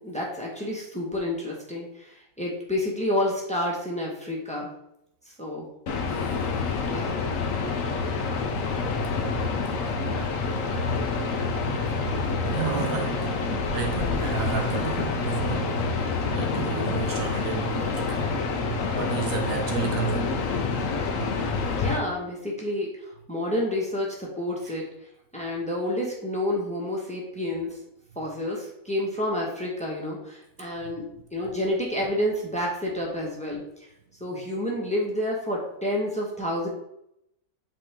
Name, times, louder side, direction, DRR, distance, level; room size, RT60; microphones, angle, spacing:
voice 1, 0.0-4.7 5.4-5.7 6.9-7.1 21.8-23.0 23.3-24.9 25.3-27.8 28.1-33.7 34.2-36.7, left 1 dB, 5° left, 1.4 m, -29 dB
sound 1, 5.9-22.0, left 4 dB, 65° left, 1.2 m, -27 dB
voice 2, 12.5-15.9 16.3-18.3 18.9-20.4 30.8-30.9, right 7 dB, 70° right, 1.2 m, -32 dB
8.2 x 4.4 x 3.6 m
omnidirectional pair, 1.5 m